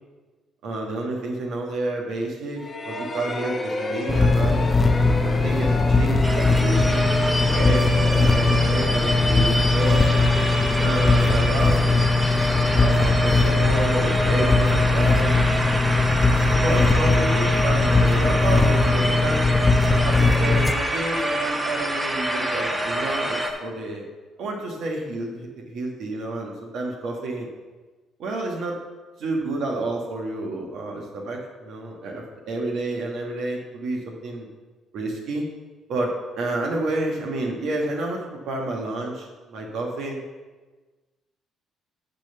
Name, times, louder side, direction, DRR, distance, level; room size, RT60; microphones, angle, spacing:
voice 1, 0.6-4.7 5.2-7.1 7.5-10.1 10.8-11.8 12.3-12.5 12.8-15.3 16.6-19.5 20.0-24.0 24.4-27.5 28.2-28.8 29.2-34.5 34.9-35.5 35.9-40.2, right 2 dB, 70° right, 0 dB, 1.4 m, -30 dB
sound 1, 2.6-11.2, left 2 dB, 30° left, 1.0 m, -33 dB
sound 2, 4.1-20.7, left 3 dB, 15° left, 0.6 m, -20 dB
sound 3, 6.2-23.5, right 1 dB, 15° right, 1.1 m, -26 dB
10.0 x 3.4 x 6.8 m, 1.3 s
supercardioid pair, 75°, 0 cm